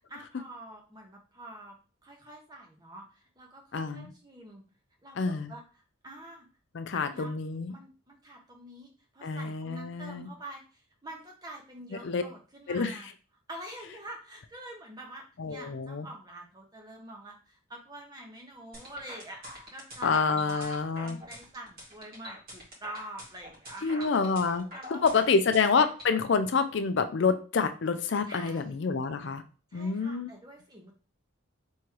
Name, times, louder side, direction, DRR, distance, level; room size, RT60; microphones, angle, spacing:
voice 1, 0.1-1.7 2.0-4.6 5.0-6.5 6.9-7.3 7.7-13.1 13.5-24.1 24.7-25.5 28.3-28.8 29.7-30.9, right 1 dB, 20° right, 1 dB, 1.0 m, -46 dB
voice 2, 3.7-4.1 5.2-5.5 6.7-7.7 9.2-10.3 12.0-12.2 12.7-12.9 15.4-16.1 20.0-21.2 23.8-24.7 24.9-29.4 29.7-30.3, left 5 dB, 55° left, 9 dB, 0.4 m, -27 dB
sound 1, 18.7-26.1, equal, 45° right, 1.9 m, -45 dB
3.6 x 3.1 x 4.5 m, 0.36 s
head